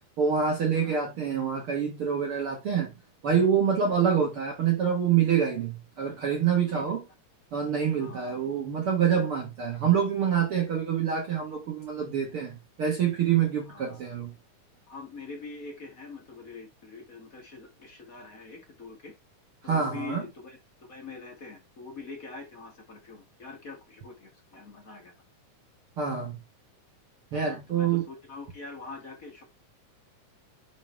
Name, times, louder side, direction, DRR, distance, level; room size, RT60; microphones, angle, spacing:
voice 1, 0.2-2.9 3.2-7.0 7.5-14.3 19.6-20.2 26.0-26.4 27.3-28.0, right 7 dB, 55° right, 1.9 m, -26 dB
voice 2, 3.9-4.3 6.6-6.8 8.0-8.4 13.7-14.0 14.9-19.1 19.6-20.6 20.9-25.1 27.3-29.4, left 4 dB, 35° left, 1.7 m, -44 dB
8.9 x 4.0 x 3.3 m
omnidirectional pair, 3.6 m